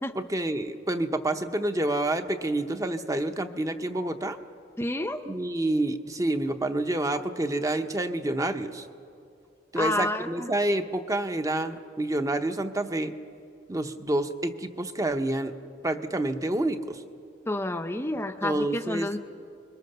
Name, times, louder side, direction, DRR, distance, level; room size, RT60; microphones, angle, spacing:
voice 1, 0.1-4.4 5.3-8.9 9.7-13.1 13.7-15.5 15.8-17.0 18.1-19.1, right 1 dB, 15° right, 8 dB, 0.8 m, -28 dB
voice 2, 4.8-5.2 9.8-10.5 17.5-19.2, left 1 dB, 10° left, 7 dB, 0.6 m, -29 dB
25.5 x 22.5 x 6.8 m, 2.5 s
head